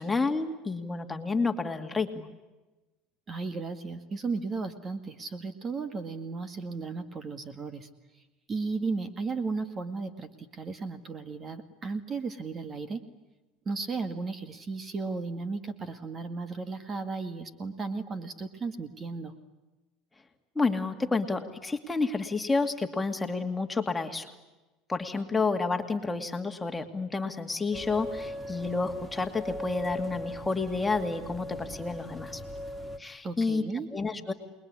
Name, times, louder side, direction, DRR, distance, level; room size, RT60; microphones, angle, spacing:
voice 1, 0.0-2.3 20.6-24.3 24.9-32.4 33.0-33.6 33.9-34.3, left 3 dB, 10° left, 5 dB, 2.5 m, -30 dB
voice 2, 3.3-7.9 8.5-13.0 13.7-19.3 33.2-33.9, right 4 dB, 30° right, 10 dB, 2.0 m, -35 dB
sound 1, 27.7-33.0, left 1 dB, 10° right, 2.0 m, -39 dB
28.0 x 21.5 x 9.8 m, 1.1 s
supercardioid pair, 115°, 0 cm